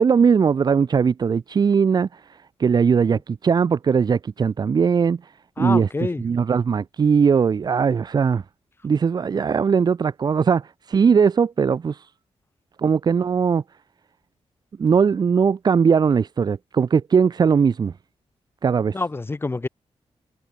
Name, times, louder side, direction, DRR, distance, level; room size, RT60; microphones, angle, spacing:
voice 1, 0.0-2.1 2.6-5.2 5.6-5.9 6.2-8.4 8.8-12.1 12.8-13.6 14.8-17.9 18.6-19.0, right 6 dB, 40° right, 0.4 m, -19 dB
voice 2, 5.6-6.2 18.9-19.7, left 3 dB, 20° left, 0.5 m, -27 dB
cardioid pair, 95°, 11 cm